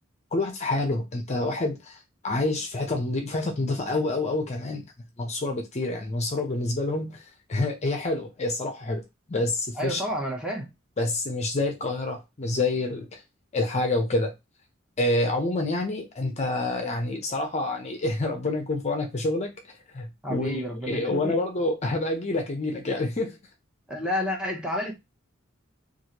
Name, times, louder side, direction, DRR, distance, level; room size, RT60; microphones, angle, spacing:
voice 1, 0.3-4.8 5.2-9.0 9.3-10.0 11.0-13.2 13.5-14.3 15.0-19.5 19.9-23.4, left 2 dB, 35° left, 0.6 m, -27 dB
voice 2, 9.7-10.7 20.2-21.4 23.9-24.9, equal, 5° right, 0.7 m, -30 dB
3.0 x 2.5 x 2.8 m
head